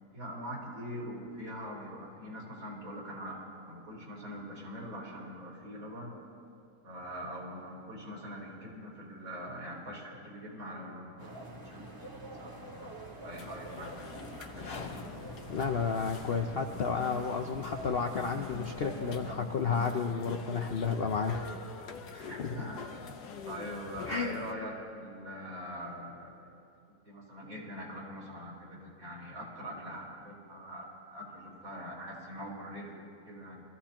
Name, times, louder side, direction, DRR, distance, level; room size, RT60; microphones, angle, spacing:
voice 1, 0.1-6.2 6.8-14.1 14.4-15.1 22.3-23.2 23.5-24.7 25.0-26.5 27.0-33.6, equal, 60° right, -5 dB, 4.3 m, -43 dB
sound 1, 11.2-19.4, right 1 dB, 15° right, 1.2 m, -46 dB
sound 2, 13.3-24.5, left 6 dB, 85° left, 1.4 m, -46 dB
sound 3, 14.4-16.5, left 4 dB, 40° left, 1.6 m, -45 dB
voice 2, 15.5-21.4 22.1-22.6 24.1-24.3, left 5 dB, 55° left, 4 dB, 0.6 m, -32 dB
23.0 x 15.0 x 2.9 m, 2.6 s
omnidirectional pair, 1.7 m